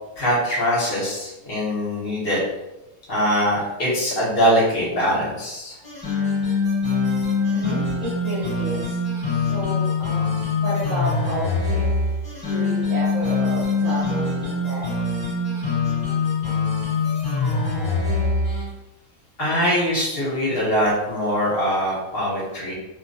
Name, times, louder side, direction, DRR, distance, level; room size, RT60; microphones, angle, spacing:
voice 1, 0.2-2.4 3.1-5.8 19.4-22.7, equal, 45° left, -6 dB, 1.1 m, -22 dB
sound 1, 5.8-18.7, left 3 dB, 15° left, 1.3 m, -23 dB
voice 2, 7.5-9.0 9.3-11.9 12.5-14.9, equal, 70° right, -5 dB, 1.0 m, -31 dB
2.7 x 2.2 x 2.6 m, 0.98 s
omnidirectional pair, 1.5 m